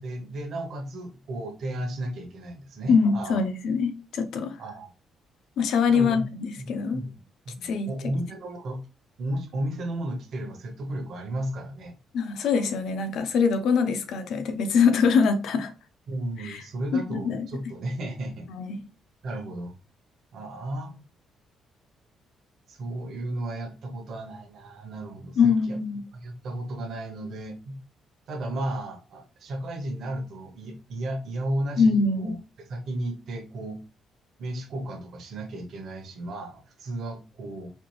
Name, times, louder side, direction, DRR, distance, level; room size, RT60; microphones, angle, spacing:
voice 1, 0.0-3.4 4.6-4.9 5.9-6.2 6.6-6.7 6.9-7.2 7.5-8.8 9.2-11.9 16.1-18.5 19.2-19.7 20.3-20.9 22.7-25.8 26.2-27.8 28.3-33.8 34.4-37.7, right 1 dB, 50° right, 0.9 m, -34 dB
voice 2, 2.9-4.6 5.6-7.0 7.6-7.9 12.1-15.7 16.4-16.6 16.9-17.5 18.5-18.8 25.4-26.0 31.8-32.4, left 5 dB, 65° left, 0.6 m, -23 dB
4.3 x 2.4 x 3.0 m
cardioid pair, 175°, 0 cm